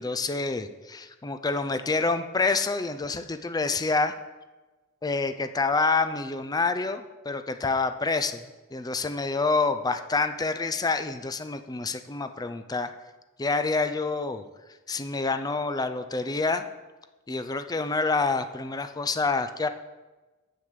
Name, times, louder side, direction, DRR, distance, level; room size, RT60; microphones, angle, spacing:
voice 1, 0.0-4.1 5.0-8.4 8.7-12.9 13.4-14.4 14.9-16.7 17.3-19.7, left 3 dB, 15° left, 9 dB, 0.5 m, -27 dB
7.9 x 6.5 x 6.7 m, 1.2 s
head